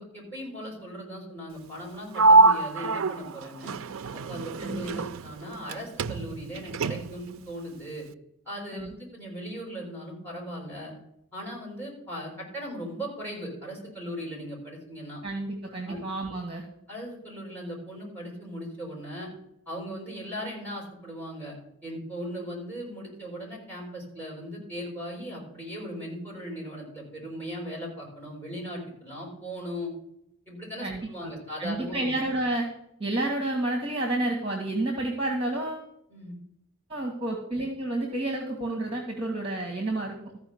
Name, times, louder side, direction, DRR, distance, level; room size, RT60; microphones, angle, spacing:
voice 1, 0.0-3.7 4.1-8.0 8.5-10.9 11.3-15.2 15.9-16.0 16.9-19.3 19.7-21.6 21.8-29.9 30.5-32.1 36.1-36.3, equal, 10° left, -3 dB, 5.4 m, -38 dB
Sliding door, 2.1-5.7 6.0-7.3, right 3 dB, 70° right, 0.4 m, -24 dB
voice 2, 4.6-5.0 8.7-9.0 15.2-16.6 30.8-31.3 31.6-32.7 33.0-35.9 36.9-40.2, right 2 dB, 25° right, 2 dB, 1.7 m, -30 dB
14.0 x 5.1 x 8.0 m, 0.78 s
head